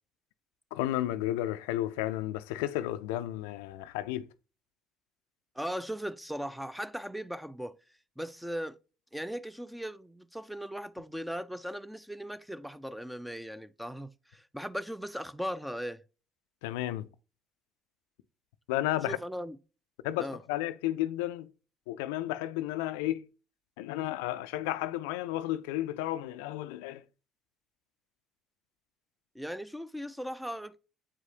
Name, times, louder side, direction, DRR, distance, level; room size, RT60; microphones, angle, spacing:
voice 1, 0.7-4.3 16.6-17.1 18.7-19.2 20.0-21.5 21.9-23.3 23.8-27.0, left 14 dB, 85° left, 0.4 m, -32 dB
voice 2, 5.6-7.8 8.2-8.8 9.1-16.0 19.0-19.6 20.2-20.4 29.3-30.8, equal, 5° right, 0.6 m, -38 dB
7.4 x 4.9 x 2.8 m
hypercardioid pair, 65°, 0 cm